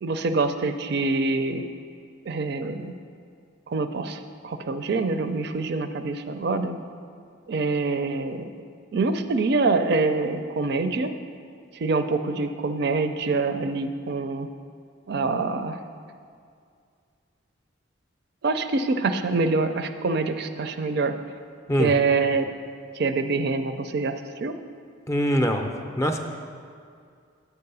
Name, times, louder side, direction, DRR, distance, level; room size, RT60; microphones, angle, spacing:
voice 1, 0.0-1.6 2.3-2.9 3.7-6.8 7.5-8.5 8.9-11.1 11.8-14.5 15.1-15.8 18.4-21.1 21.8-22.5 23.0-24.6, right 3 dB, 55° right, 8 dB, 0.4 m, -25 dB
voice 2, 25.1-25.7 26.0-26.2, equal, 15° left, 4 dB, 0.5 m, -23 dB
9.0 x 4.8 x 6.7 m, 2.2 s
head